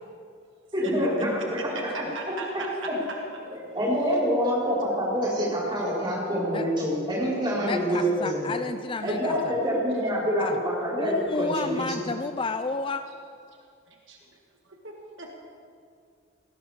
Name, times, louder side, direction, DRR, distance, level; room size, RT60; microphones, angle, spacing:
voice 1, 0.7-1.6 3.5-8.6 9.0-11.8, equal, 20° right, -7 dB, 5.0 m, -26 dB
voice 2, 1.7-3.2 9.1-9.2 9.5-9.6 9.9-10.0 13.9-14.2 14.8-15.3, right 2 dB, 60° right, 0 dB, 1.6 m, -37 dB
voice 3, 7.6-9.5 10.4-10.5 10.9-13.1, left 3 dB, 25° left, 9 dB, 0.3 m, -31 dB
18.5 x 17.0 x 3.7 m, 2.4 s
head